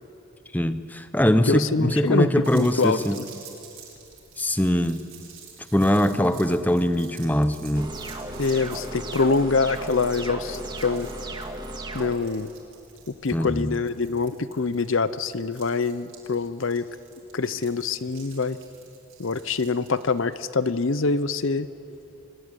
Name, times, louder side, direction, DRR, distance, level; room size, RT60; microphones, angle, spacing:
voice 1, 0.5-3.2 4.4-5.1 5.7-7.9 13.3-13.8, equal, 10° left, 10 dB, 0.8 m, -22 dB
voice 2, 1.5-3.3 8.4-11.1 11.9-12.5 13.2-16.9 17.3-18.6 19.2-21.7, left 4 dB, 60° left, 14 dB, 0.7 m, -25 dB
sound 1, 2.4-21.5, right 8 dB, 60° right, 7.1 m, -49 dB
sound 2, 7.8-12.1, right 1 dB, 20° right, 1.9 m, -35 dB
24.0 x 24.0 x 9.8 m, 2.7 s
head